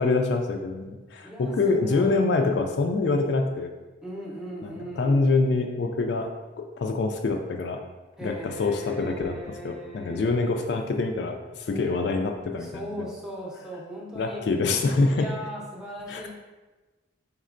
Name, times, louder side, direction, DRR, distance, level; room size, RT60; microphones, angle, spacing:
voice 1, 0.0-3.7 4.6-6.3 6.6-7.8 8.2-13.0 14.2-15.3 16.1-16.3, left 3 dB, 60° left, 4 dB, 0.3 m, -25 dB
voice 2, 1.2-2.7 4.0-5.3 8.2-10.3 11.7-12.1 12.6-14.4 15.1-16.3, equal, 5° right, -5 dB, 0.6 m, -38 dB
4.2 x 3.6 x 2.5 m, 1.2 s
head